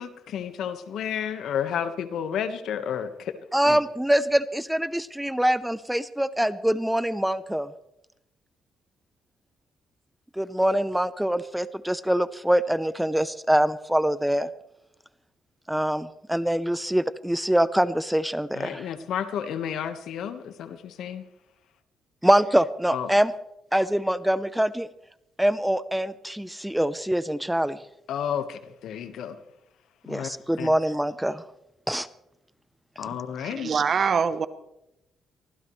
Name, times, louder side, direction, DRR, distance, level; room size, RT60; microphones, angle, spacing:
voice 1, 0.0-3.3 3.6-3.8 18.5-21.2 22.9-23.1 28.1-29.4 30.0-30.3 30.6-30.7 33.0-33.7, left 8 dB, 75° left, 9 dB, 1.4 m, -31 dB
voice 2, 3.5-7.7 10.4-14.5 15.7-18.9 22.2-23.3 23.7-24.9 25.4-27.8 30.1-31.4 31.9-32.1, right 1 dB, 5° right, 15 dB, 0.6 m, -24 dB
voice 3, 33.4-34.5, right 6 dB, 50° right, 13 dB, 1.0 m, -24 dB
24.0 x 15.5 x 3.2 m, 0.87 s
cardioid pair, 90°, 0 cm